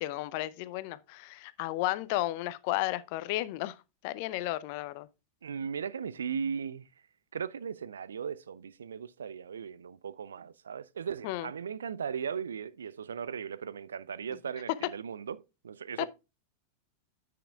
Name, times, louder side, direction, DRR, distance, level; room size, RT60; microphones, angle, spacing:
voice 1, 0.0-3.8 4.0-5.1 11.2-11.5, left 17 dB, 45° left, 0.6 m, -33 dB
voice 2, 5.4-6.9 7.3-16.1, right 7 dB, 70° right, 0.4 m, -37 dB
9.8 x 7.6 x 2.3 m
figure-of-eight pair, 90°, 0 cm